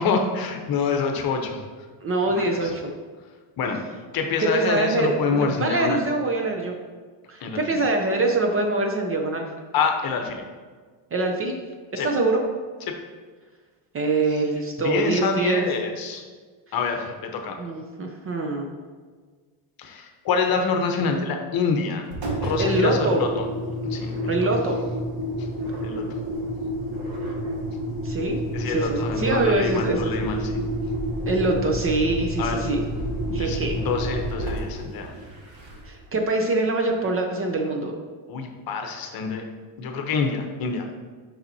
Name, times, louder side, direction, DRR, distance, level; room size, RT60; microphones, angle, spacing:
voice 1, 0.0-1.6 2.3-2.7 3.6-3.8 4.1-6.0 7.4-7.8 9.7-10.4 12.0-12.1 12.9-13.0 14.8-16.3 16.7-17.6 19.8-22.0 22.4-23.4 23.9-24.1 25.4-25.5 25.8-26.0 28.5-30.5 32.4-32.7 33.4-35.1 38.3-39.4 39.8-40.9, left 5 dB, 45° left, 4 dB, 0.9 m, -26 dB
voice 2, 2.0-2.8 4.4-6.7 7.3-9.4 11.1-11.6 11.9-12.4 13.9-15.7 17.6-18.7 22.6-23.2 24.3-24.8 28.0-28.4 28.7-30.1 31.3-32.8 33.3-33.8 35.8-37.9, right 2 dB, 30° right, 3 dB, 0.5 m, -24 dB
Engine, 22.1-36.0, equal, 45° right, 1.4 m, -29 dB
7.0 x 5.6 x 2.7 m, 1.5 s
cardioid pair, 135°, 49 cm